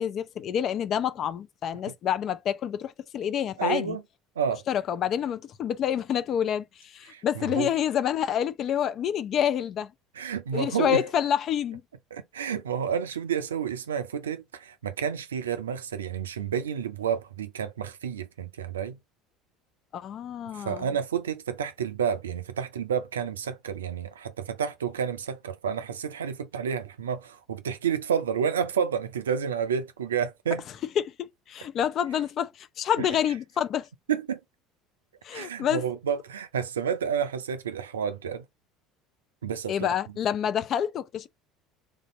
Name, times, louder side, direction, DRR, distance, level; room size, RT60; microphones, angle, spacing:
voice 1, 0.0-4.0 4.7-9.9 10.5-11.8 19.9-20.9 31.5-33.9 35.2-35.8 39.7-41.3, left 9 dB, 45° left, 0.4 m, -28 dB
voice 2, 3.6-4.0 4.4-4.6 7.1-7.7 10.2-11.0 12.1-19.0 20.5-30.6 33.0-33.2 34.1-34.4 35.3-38.5 39.4-39.9, right 7 dB, 80° right, 0.4 m, -30 dB
3.3 x 2.6 x 4.2 m
figure-of-eight pair, 65°, 0 cm